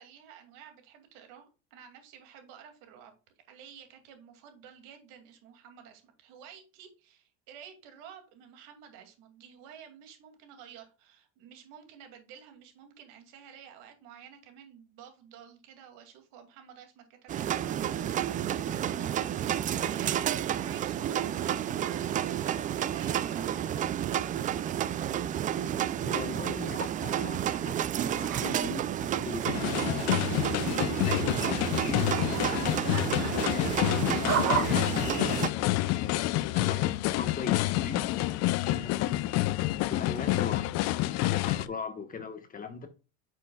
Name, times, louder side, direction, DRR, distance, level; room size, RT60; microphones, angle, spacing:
voice 1, 0.0-3.1 3.5-24.8 38.3-38.6, right 8 dB, 65° right, 2.5 m, -52 dB
sound 1, 17.3-35.5, right 10 dB, 25° right, 0.3 m, -31 dB
voice 2, 26.0-30.3 30.9-38.1 38.7-39.3 39.9-40.7 41.0-42.9, left 4 dB, 25° left, 1.3 m, -40 dB
sound 2, 27.3-30.0 30.3-34.6, right 7 dB, 45° right, 1.5 m, -36 dB
sound 3, 29.5-41.7, left 16 dB, 50° left, 0.6 m, -28 dB
9.5 x 6.5 x 2.3 m
supercardioid pair, 110°, 34 cm